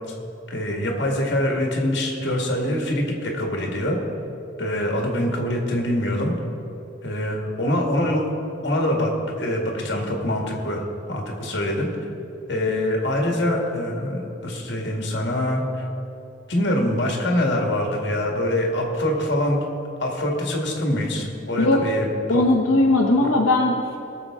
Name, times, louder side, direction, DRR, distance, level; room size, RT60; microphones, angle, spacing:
voice 1, 0.5-4.0 4.6-6.3 7.0-8.3 8.6-9.1 9.4-11.9 12.5-15.8 16.5-19.6 20.0-22.1 22.3-22.4 23.2-23.3, left 1 dB, 55° left, 0 dB, 1.7 m, -24 dB
voice 2, 22.3-24.0, left 2 dB, 85° left, -1 dB, 0.9 m, -19 dB
19.0 x 6.9 x 3.6 m, 2.9 s
head